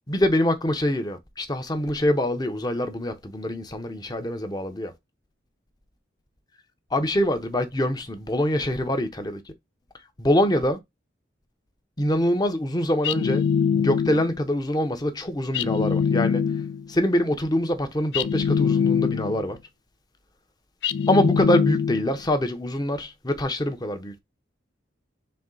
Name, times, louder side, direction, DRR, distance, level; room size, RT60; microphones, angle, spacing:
voice 1, 0.1-4.9 6.9-9.4 10.2-10.8 12.0-13.5 13.7-16.4 16.9-19.6 21.1-24.2, left 1 dB, 20° left, 0.8 m, -24 dB
sound 1, 13.0-14.4 15.5-16.9 18.1-19.5 20.8-22.2, left 7 dB, 60° left, 0.4 m, -23 dB
4.3 x 3.2 x 3.8 m
head